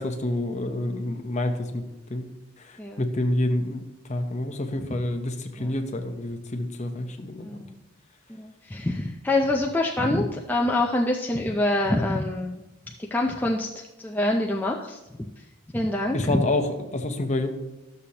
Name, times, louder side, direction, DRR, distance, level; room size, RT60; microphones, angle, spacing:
voice 1, 0.0-1.8 2.1-2.3 2.6-3.8 4.1-7.5 16.1-17.5, left 1 dB, 35° left, 5 dB, 0.8 m, -28 dB
voice 2, 7.4-7.8 8.3-12.6 13.1-13.7 14.0-15.0 15.7-16.4, left 1 dB, 10° left, -1 dB, 0.4 m, -25 dB
12.5 x 6.7 x 2.9 m, 1.0 s
head